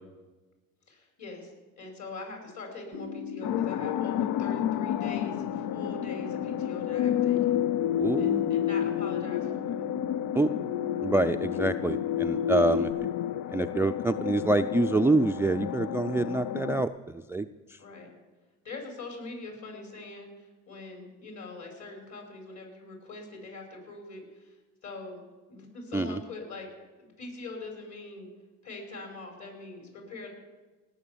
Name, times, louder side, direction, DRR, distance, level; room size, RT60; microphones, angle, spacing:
voice 1, 0.9-7.6 8.2-9.7 11.5-11.7 17.8-18.1 18.6-24.6 24.8-25.2 25.5-26.7 27.0-28.3 28.6-30.3, left 3 dB, 50° left, 2 dB, 5.7 m, -43 dB
sound 1, 2.9-12.9, left 6 dB, 35° left, 1.4 m, -38 dB
sound 2, 3.4-16.8, left 11 dB, 70° left, 0.5 m, -30 dB
voice 2, 8.0-8.5 10.3-10.5 11.0-12.9 13.5-17.8 25.9-26.2, right 2 dB, 5° right, 11 dB, 0.4 m, -26 dB
18.0 x 7.2 x 6.9 m, 1.2 s
supercardioid pair, 70°, 37 cm